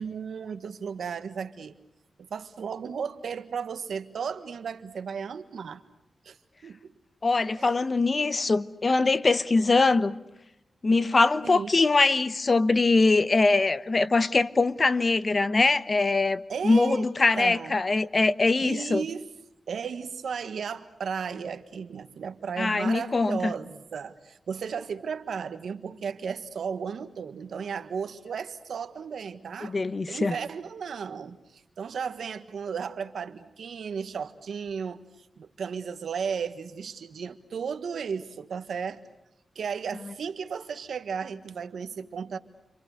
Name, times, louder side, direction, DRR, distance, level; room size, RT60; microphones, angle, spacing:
voice 1, 0.0-1.7 2.3-5.8 6.2-6.4 6.6-6.9 7.6-7.8 11.4-11.7 16.5-17.1 17.4-17.8 18.6-19.2 19.7-29.8 30.1-35.0 35.4-39.0 39.5-42.4, right 6 dB, 85° right, 1.5 m, -34 dB
voice 2, 7.2-10.2 10.8-19.0 22.6-23.5 29.6-30.3, left 3 dB, 40° left, 1.0 m, -23 dB
29.5 x 26.5 x 6.6 m
cardioid pair, 75°, 0 cm